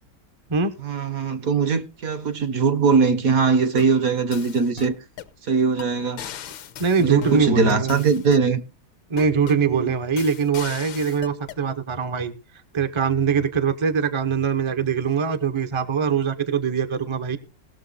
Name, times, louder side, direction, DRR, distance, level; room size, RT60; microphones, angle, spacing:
voice 1, 0.8-4.9 5.5-6.2 7.0-8.6 9.7-9.9, right 5 dB, 55° right, 1.2 m, -21 dB
sound 1, 3.6-4.0 4.3-5.4 5.8-5.9 6.2-8.5 9.2-9.7 10.2-11.6, left 9 dB, 75° left, 1.7 m, -37 dB
voice 2, 6.8-8.0 9.1-12.3 12.7-17.4, right 6 dB, 30° right, 0.5 m, -22 dB
19.0 x 7.0 x 4.0 m
omnidirectional pair, 2.2 m